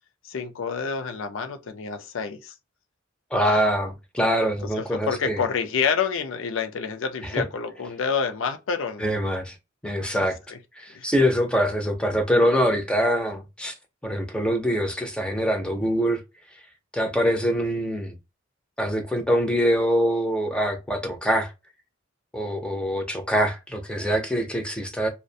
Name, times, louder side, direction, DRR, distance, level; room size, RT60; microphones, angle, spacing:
voice 1, 0.2-2.5 3.5-3.6 4.8-9.2 10.0-10.2 10.5-10.6 10.9-11.1, left 6 dB, 70° left, 0.4 m, -28 dB
voice 2, 3.3-5.4 7.3-7.4 9.0-9.6 9.8-10.4 10.8-13.7 14.0-16.2 16.9-18.2 18.8-21.5 22.3-25.1, equal, 5° left, 0.5 m, -24 dB
2.4 x 2.1 x 2.6 m
head